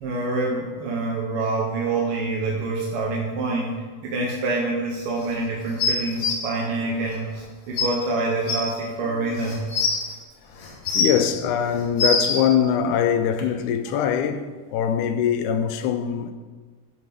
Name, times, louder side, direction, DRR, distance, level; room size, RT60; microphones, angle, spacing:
voice 1, 0.0-3.7 4.0-9.6, right 2 dB, 65° right, 1.5 m, -26 dB
sound 1, 5.8-6.3 7.4-7.5 7.8-7.9 8.5-8.6 9.4-10.0 10.6-11.2 11.7-12.4 13.4-13.5, left 4 dB, 65° left, 2.4 m, -23 dB
voice 2, 10.9-14.4 14.7-16.3, left 8 dB, 85° left, 2.0 m, -22 dB
12.5 x 5.0 x 3.5 m
omnidirectional pair, 3.5 m